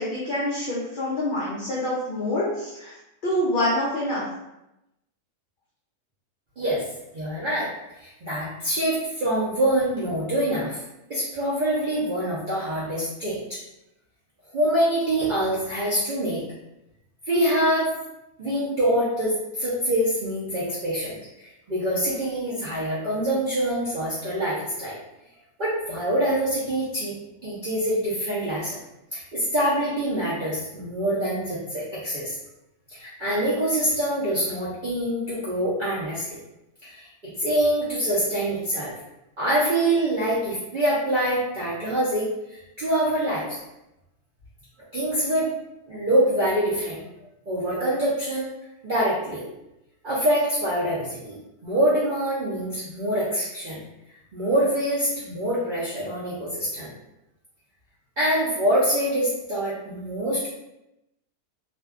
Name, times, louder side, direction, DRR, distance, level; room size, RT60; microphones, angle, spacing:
voice 1, 0.0-2.9 3.2-4.2, left 1 dB, 85° left, -7 dB, 0.4 m, -26 dB
voice 2, 7.1-7.7 8.0-10.8 11.1-13.6 14.5-16.4 17.3-17.9 18.4-25.0 25.6-27.1 27.4-28.8 29.1-32.3 32.9-36.4 36.8-37.1 37.4-38.9 39.4-42.3 42.8-43.6 44.9-45.5 45.9-47.1 47.5-48.5 48.8-49.4 50.0-51.4 51.6-53.8 54.3-56.9 58.2-60.5, right 1 dB, 65° right, -9 dB, 0.5 m, -25 dB
2.5 x 2.2 x 2.3 m, 0.90 s
omnidirectional pair, 1.6 m